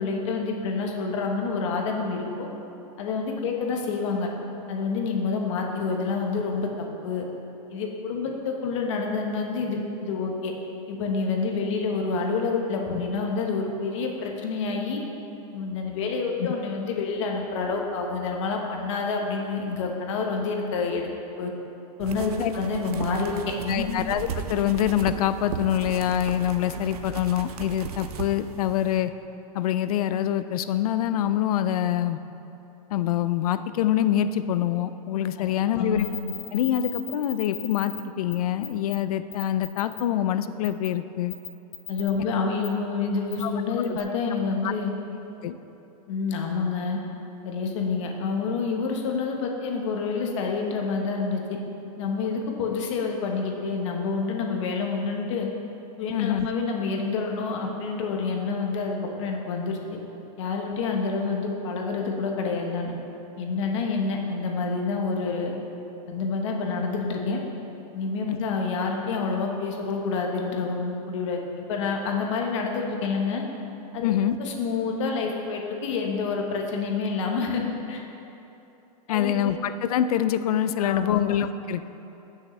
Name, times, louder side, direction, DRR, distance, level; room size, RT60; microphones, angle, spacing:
voice 1, 0.0-2.5 3.0-4.3 4.7-7.2 7.7-10.5 10.9-15.0 15.5-21.1 21.4-21.5 22.0-24.0 35.4-36.1 41.9-44.9 46.1-47.0 47.4-51.6 52.0-55.5 56.0-59.8 60.4-62.9 63.4-65.5 66.1-67.4 67.9-71.4 71.7-73.4 73.9-74.1 74.4-78.0 79.1-79.5 80.8-81.2, left 4 dB, 55° left, 1 dB, 1.2 m, -28 dB
sound 1, 22.0-29.0, right 7 dB, 85° right, 0.7 m, -36 dB
voice 2, 23.7-29.1 29.5-32.2 32.9-36.1 36.5-41.4 43.4-43.5 43.9-44.0 44.6-44.7 45.4-45.6 56.1-56.5 68.2-68.4 74.0-74.4 79.1-81.9, left 11 dB, 75° left, 12 dB, 0.5 m, -25 dB
sound 2, 36.0-38.0 38.3-38.4 38.6-39.0 39.3-40.0 40.6-40.9 41.3-42.1 42.6-42.7 43.3-43.4 43.8-44.0, left 11 dB, 25° left, 1.0 m, -37 dB
14.5 x 6.3 x 3.2 m, 2.9 s
supercardioid pair, 170°, 19 cm